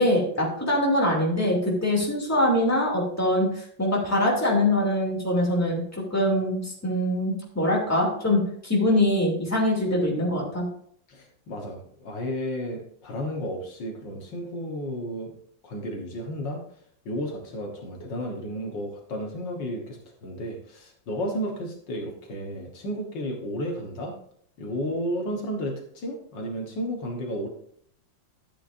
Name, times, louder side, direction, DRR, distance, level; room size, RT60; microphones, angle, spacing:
voice 1, 0.0-10.7, left 1 dB, 10° left, -2 dB, 2.5 m, -23 dB
voice 2, 11.1-15.3 15.6-16.6 17.1-24.2 24.6-27.5, equal, 70° left, 1 dB, 2.0 m, -32 dB
12.5 x 8.6 x 2.6 m, 0.64 s
omnidirectional pair, 2.1 m